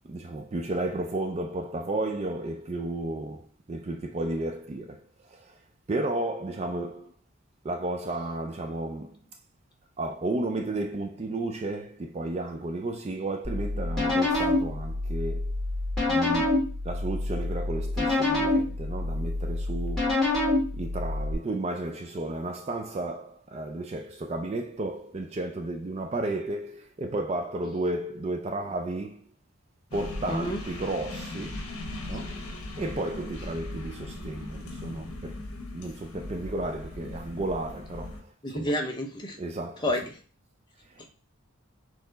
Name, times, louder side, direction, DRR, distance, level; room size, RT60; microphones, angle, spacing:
voice 1, 0.0-5.5 5.9-7.1 7.6-9.2 10.0-15.5 16.1-20.1 20.7-29.2 29.9-31.7 32.0-32.4 32.8-35.4 35.7-38.7 39.4-39.8 40.9-41.1, right 2 dB, 30° right, 0.3 m, -33 dB
sound 1, 13.4-21.3, left 2 dB, ahead, 2.1 m, -27 dB
sound 2, 29.9-38.2, left 2 dB, 75° left, 1.1 m, -39 dB
voice 2, 30.3-30.6 38.4-39.4 39.8-40.2 41.0-41.1, left 1 dB, 20° left, 0.7 m, -29 dB
4.3 x 3.1 x 3.9 m
head